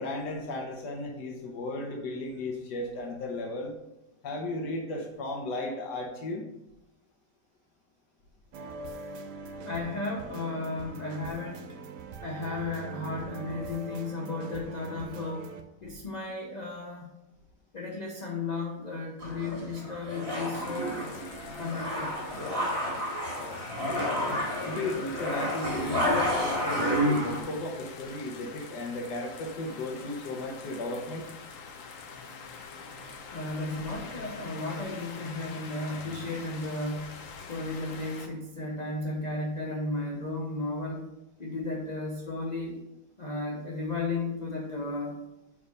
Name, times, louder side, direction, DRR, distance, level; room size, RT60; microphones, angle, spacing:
voice 1, 0.0-3.7 4.2-6.5 24.6-31.3, left 2 dB, 85° left, 1 dB, 1.6 m, -35 dB
sound 1, 8.5-15.6, right 4 dB, 80° right, 1.3 m, -42 dB
voice 2, 9.6-11.8 12.2-15.5 15.8-17.1 17.7-21.0 21.6-22.2 33.3-37.2 37.5-41.1 41.4-42.8 43.2-45.2, left 2 dB, 35° left, -2 dB, 0.8 m, -34 dB
sound 2, 19.2-27.4, equal, 55° right, 2.7 m, -30 dB
sound 3, 20.5-38.3, left 5 dB, 60° left, 1.0 m, -45 dB
5.3 x 4.9 x 5.2 m, 0.90 s
omnidirectional pair, 1.8 m